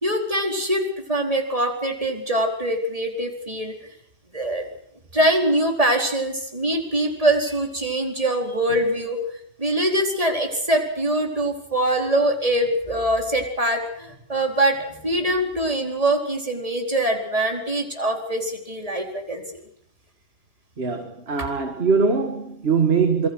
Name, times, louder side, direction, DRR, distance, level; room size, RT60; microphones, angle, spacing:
voice 1, 0.0-3.7 4.3-4.7 5.1-9.2 9.6-19.4, right 1 dB, 20° right, 4.5 m, -23 dB
voice 2, 20.8-23.3, right 5 dB, 35° right, 2.0 m, -22 dB
27.5 x 23.0 x 6.3 m
omnidirectional pair, 1.8 m